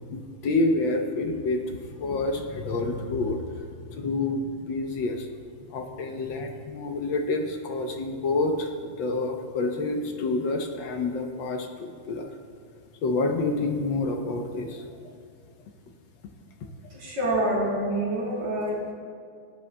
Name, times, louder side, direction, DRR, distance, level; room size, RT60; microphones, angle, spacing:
voice 1, 0.1-3.4 3.9-5.3 5.7-12.3 13.0-14.8 16.6-16.7, left 2 dB, 65° left, 4 dB, 1.4 m, -28 dB
voice 2, 16.9-18.9, right 1 dB, 75° right, -6 dB, 4.3 m, -27 dB
18.5 x 11.0 x 2.2 m, 2.2 s
omnidirectional pair, 2.4 m